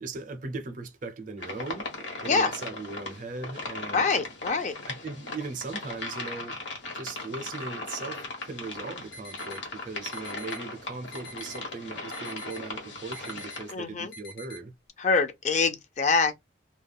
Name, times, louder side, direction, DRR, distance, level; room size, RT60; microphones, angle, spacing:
voice 1, 0.0-1.9 2.2-4.0 5.0-6.6 6.9-14.7, right 3 dB, 45° right, 0.5 m, -38 dB
sound 1, 1.4-13.7, left 2 dB, 70° left, 1.0 m, -38 dB
voice 2, 3.9-4.8 13.7-14.1 15.0-16.4, left 4 dB, 40° left, 0.4 m, -25 dB
sound 2, 9.1-9.6 10.1-10.6 11.1-11.6 12.1-12.6 13.1-13.6 14.1-14.6, left 1 dB, 90° left, 1.0 m, -45 dB
2.2 x 2.2 x 3.3 m
head